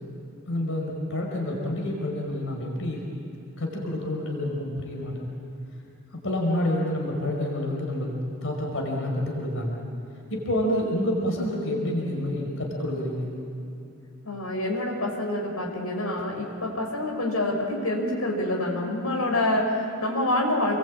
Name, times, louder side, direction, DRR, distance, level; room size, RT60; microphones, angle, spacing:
voice 1, 0.5-3.0 3.6-5.3 6.2-9.8 10.3-13.3, left 1 dB, 65° left, 0 dB, 5.2 m, -28 dB
voice 2, 14.3-20.8, left 1 dB, 85° left, 0 dB, 5.6 m, -27 dB
28.5 x 22.0 x 8.7 m, 2.8 s
head